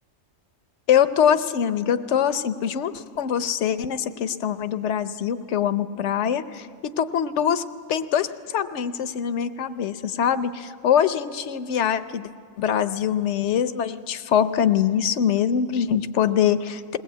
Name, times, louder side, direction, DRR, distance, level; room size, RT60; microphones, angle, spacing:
voice 1, 0.9-7.6 7.9-12.3 12.6-17.0, left 8 dB, 70° left, 12 dB, 1.0 m, -23 dB
21.5 x 18.5 x 8.4 m, 2.1 s
omnidirectional pair, 1.3 m